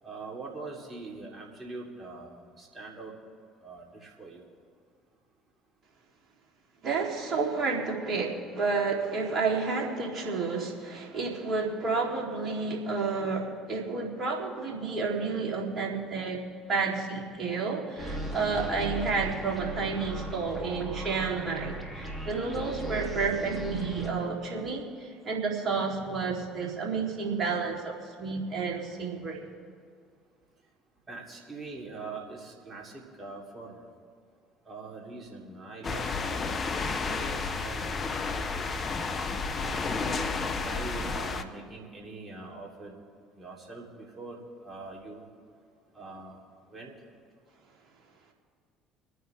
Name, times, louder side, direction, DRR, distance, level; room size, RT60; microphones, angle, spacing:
voice 1, 0.0-3.2 3.6-4.5 31.1-33.9 34.6-36.8 37.1-38.0 38.5-38.8 39.5-43.0 43.3-45.3 45.9-47.1, right 3 dB, 30° right, -2 dB, 3.6 m, -43 dB
voice 2, 6.8-29.5, right 4 dB, 45° right, -1 dB, 3.4 m, -31 dB
sound 1, 18.0-24.1, right 1 dB, 10° left, 3.0 m, -38 dB
sound 2, 35.8-41.4, left 4 dB, 35° left, 1.0 m, -31 dB
25.5 x 9.5 x 3.6 m, 2.1 s
hypercardioid pair, 60°, 0 cm